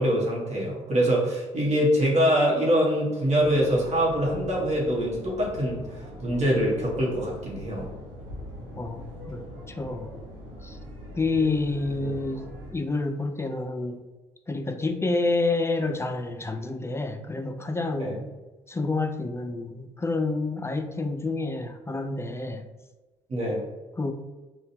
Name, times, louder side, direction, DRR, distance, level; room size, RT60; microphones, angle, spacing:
voice 1, 0.0-7.9 18.0-18.2 23.3-23.6, equal, 45° right, -4 dB, 1.1 m, -24 dB
sound 1, 3.4-12.7, equal, 85° right, 0.8 m, -41 dB
voice 2, 8.8-10.1 10.6-10.8 11.2-14.0 14.5-18.3 18.7-22.6 24.0-24.1, left 3 dB, 15° left, 7 dB, 0.3 m, -28 dB
3.7 x 2.3 x 2.7 m, 1.2 s
hypercardioid pair, 55°, 16 cm